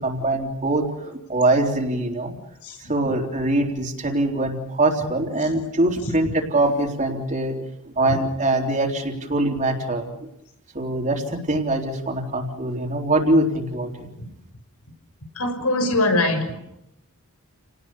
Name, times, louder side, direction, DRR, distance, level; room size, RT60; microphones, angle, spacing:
voice 1, 0.0-2.4 2.9-7.6 8.0-10.1 10.7-14.1, right 2 dB, 35° right, 2 dB, 3.6 m, -23 dB
voice 2, 15.4-16.6, left 2 dB, 80° left, 7 dB, 5.9 m, -22 dB
30.0 x 19.0 x 6.9 m, 0.82 s
head